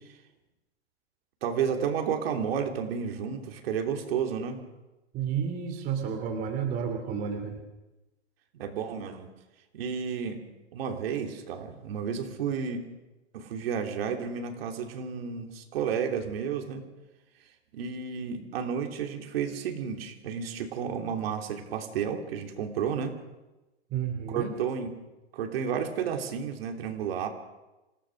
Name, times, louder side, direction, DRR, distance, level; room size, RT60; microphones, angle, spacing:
voice 1, 1.4-4.6 8.5-9.3 9.7-10.4 10.7-12.9 13.3-16.8 17.7-23.2 24.3-24.9 25.3-27.3, right 7 dB, 55° right, 3 dB, 3.2 m, -31 dB
voice 2, 5.1-7.6 23.9-24.5, right 7 dB, 25° right, 3 dB, 2.6 m, -31 dB
27.5 x 17.0 x 6.3 m, 1.1 s
hypercardioid pair, 160°, 35 cm